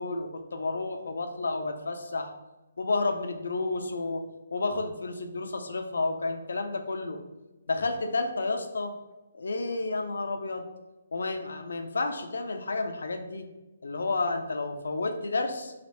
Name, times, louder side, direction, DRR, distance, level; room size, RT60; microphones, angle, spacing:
voice 1, 0.0-2.3 2.8-4.2 4.5-7.2 7.7-8.9 9.3-10.7 11.1-13.5 13.8-15.7, left 3 dB, 80° left, 6 dB, 0.5 m, -31 dB
3.3 x 2.4 x 4.1 m, 1.1 s
hypercardioid pair, 155°, 0 cm